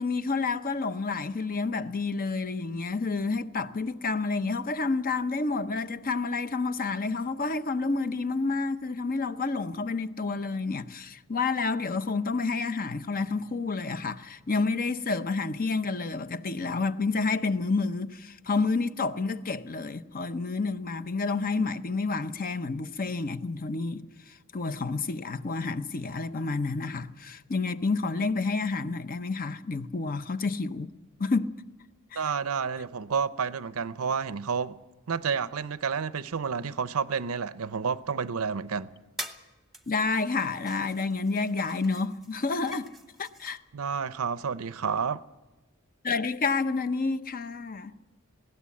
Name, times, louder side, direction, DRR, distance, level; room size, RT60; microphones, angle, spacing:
voice 1, 0.0-30.9 31.2-31.5 32.1-32.2 39.9-42.9 43.2-43.6 46.0-47.9, left 4 dB, 40° left, 0.7 m, -29 dB
voice 2, 32.2-34.8 35.1-38.9 43.7-45.2, right 6 dB, 70° right, 0.6 m, -30 dB
sound 1, 39.2-39.5 39.7-43.6, right 1 dB, ahead, 1.0 m, -44 dB
20.0 x 17.0 x 8.5 m
head